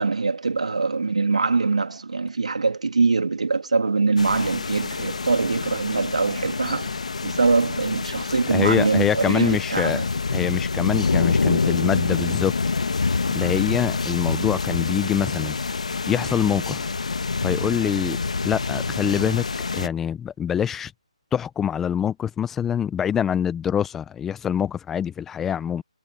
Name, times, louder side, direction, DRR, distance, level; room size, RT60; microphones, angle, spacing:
voice 1, 0.0-6.9 7.2-10.1, right 4 dB, 85° right, 2.7 m, -23 dB
sound 1, 4.2-19.9, left 4 dB, 75° left, 1.3 m, -26 dB
voice 2, 8.5-10.0 10.3-12.5 13.3-15.6 16.1-16.9 17.4-18.2 18.4-19.4 19.7-20.9 21.3-25.8, left 8 dB, 5° left, 0.5 m, -25 dB
hypercardioid pair, 165°, 4 cm